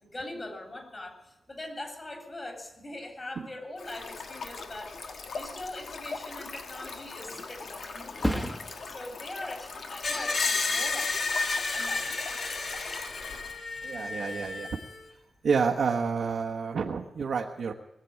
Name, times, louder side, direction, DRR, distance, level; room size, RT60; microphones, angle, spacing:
voice 1, 0.0-5.0 5.3-8.4 8.9-12.1, left 1 dB, 30° left, 2 dB, 3.5 m, -42 dB
Stream, 3.8-13.6, left 4 dB, 80° left, 1.5 m, -41 dB
Thump thud, 6.8-14.1 14.5-14.9, equal, 10° left, 1.3 m, -39 dB
Screech, 10.0-15.0, left 3 dB, 60° left, 1.6 m, -31 dB
voice 2, 13.8-14.8 15.4-17.7, right 5 dB, 80° right, 1 dB, 1.1 m, -29 dB
20.0 x 7.6 x 9.2 m, 0.89 s
wide cardioid pair, 120°, 0 cm